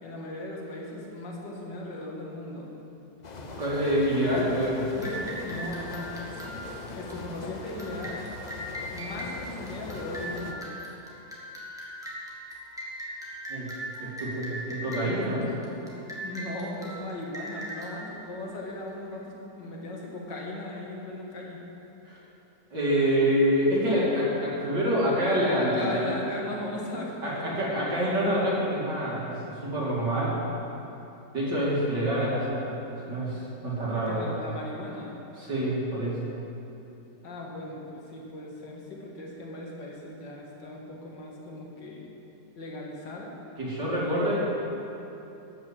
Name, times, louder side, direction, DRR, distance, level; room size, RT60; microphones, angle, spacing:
voice 1, 0.0-2.7 5.0-8.2 8.9-10.7 16.2-21.6 25.6-27.9 34.1-35.2 37.2-42.0 42.6-43.3, left 1 dB, 85° left, -2 dB, 2.3 m, -38 dB
sound 1, 3.2-10.5, left 3 dB, 55° left, 0.4 m, -41 dB
voice 2, 3.6-4.8 13.5-13.7 14.0-15.5 22.1-22.2 22.7-26.1 27.2-30.4 31.3-32.8 33.1-34.3 35.4-36.2 43.6-44.4, equal, 80° right, -6 dB, 3.3 m, -26 dB
sound 2, 5.0-19.2, equal, ahead, 1.5 m, -40 dB
12.0 x 6.0 x 7.3 m, 2.9 s
omnidirectional pair, 1.8 m